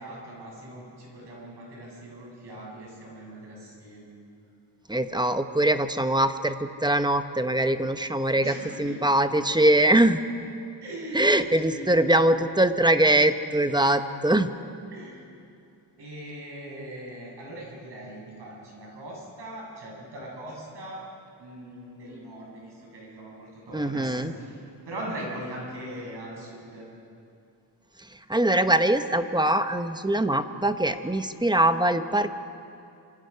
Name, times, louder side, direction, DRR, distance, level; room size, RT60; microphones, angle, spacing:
voice 1, 0.0-4.1 8.4-9.0 10.8-12.4 14.9-15.3 16.0-21.0 21.4-26.9, right 1 dB, 70° right, -2 dB, 7.6 m, -40 dB
voice 2, 4.9-10.2 11.1-14.5 23.7-24.3 28.0-32.3, right 1 dB, 10° right, 9 dB, 0.8 m, -22 dB
26.0 x 25.5 x 5.6 m, 2.6 s
wide cardioid pair, 140°, 43 cm